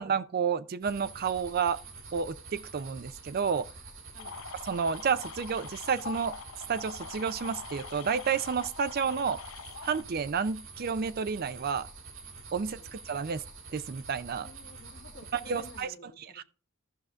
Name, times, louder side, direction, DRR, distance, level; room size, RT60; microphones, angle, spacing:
voice 1, 0.0-1.8 2.1-3.7 4.7-6.4 6.7-9.4 9.8-11.9 12.5-13.4 13.7-14.5 15.3-15.9 16.3-16.4, right 6 dB, 45° right, 0.4 m, -30 dB
sound 1, 0.8-15.8, right 4 dB, 65° right, 1.9 m, -47 dB
sound 2, 4.2-10.0, left 6 dB, 75° left, 0.8 m, -44 dB
voice 2, 12.5-12.9 14.4-16.4, left 2 dB, 50° left, 1.4 m, -52 dB
14.5 x 6.4 x 2.4 m
head